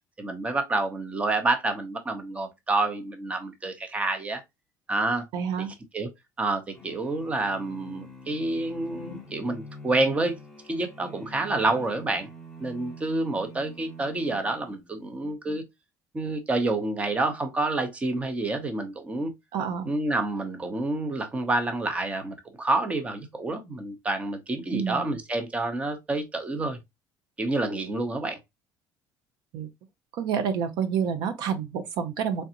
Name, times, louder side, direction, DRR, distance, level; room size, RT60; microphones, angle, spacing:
voice 1, 0.2-4.4 4.9-5.3 5.6-5.7 5.9-6.1 6.4-10.4 10.7-12.3 12.6-15.6 16.1-19.3 19.9-26.8 27.4-28.4, right 2 dB, 15° right, 0.7 m, -28 dB
voice 2, 5.3-5.7 19.5-19.9 24.7-25.2 29.5-29.7 30.1-32.4, right 7 dB, 65° right, 0.6 m, -28 dB
sound 1, 6.7-15.1, equal, ahead, 1.1 m, -45 dB
3.9 x 3.4 x 2.8 m
cardioid pair, 155°, 8 cm